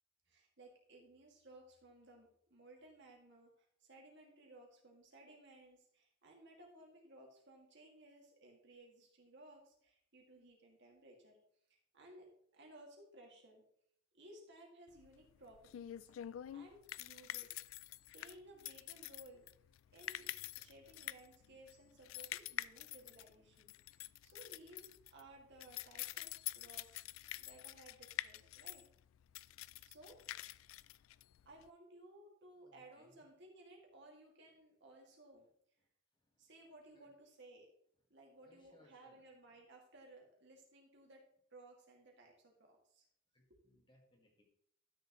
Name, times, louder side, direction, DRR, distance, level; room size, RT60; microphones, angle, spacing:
voice 1, 0.3-11.4 11.9-13.6 14.1-16.0 16.5-17.5 18.1-19.4 19.9-20.3 20.5-27.0 27.4-28.8 29.8-30.6 31.5-35.5 36.4-37.7 38.1-41.2 41.5-43.0, right 1 dB, 65° right, 0 dB, 2.3 m, -60 dB
sound 1, 15.0-31.7, left 14 dB, 90° left, 0.3 m, -47 dB
voice 2, 32.6-33.3 35.4-35.5 35.8-35.9 36.1-36.5 36.9-37.1 38.4-39.6 43.3-44.4, left 1 dB, 25° left, 1 dB, 1.8 m, -70 dB
12.0 x 6.7 x 3.1 m, 0.69 s
head